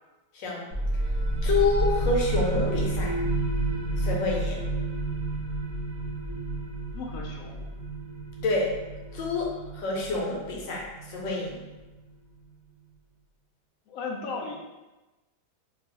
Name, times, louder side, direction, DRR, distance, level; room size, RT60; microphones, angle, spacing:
voice 1, 0.3-0.7 1.4-3.2 4.0-4.6 8.4-8.7 9.1-11.6, left 3 dB, 90° left, -2 dB, 1.4 m, -28 dB
sound 1, 0.7-12.1, right 1 dB, 50° right, 0.8 m, -30 dB
voice 2, 6.9-7.6 9.4-9.6 13.9-14.6, left 4 dB, 70° left, -1 dB, 0.8 m, -36 dB
2.9 x 2.7 x 3.0 m, 1.1 s
omnidirectional pair, 2.0 m